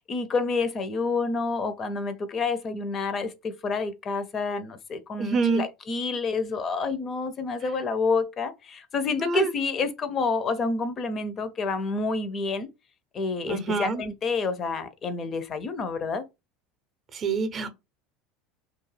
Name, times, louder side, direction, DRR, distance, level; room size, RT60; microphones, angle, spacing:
voice 1, 0.0-12.7 13.1-16.2, left 4 dB, 40° left, 0.5 m, -28 dB
voice 2, 5.2-5.6 9.2-9.5 13.5-14.0 17.1-17.7, right 4 dB, 35° right, 0.5 m, -26 dB
2.3 x 2.1 x 3.1 m
hypercardioid pair, 80°, 0 cm